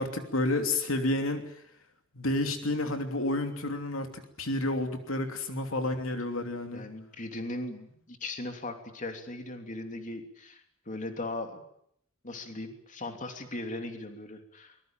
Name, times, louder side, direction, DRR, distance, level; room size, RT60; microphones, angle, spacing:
voice 1, 0.0-1.4 2.1-6.8, left 2 dB, 75° left, 5 dB, 3.0 m, -30 dB
voice 2, 6.7-11.6 12.2-14.8, left 2 dB, 40° left, 5 dB, 3.1 m, -38 dB
24.0 x 21.0 x 9.1 m, 0.70 s
head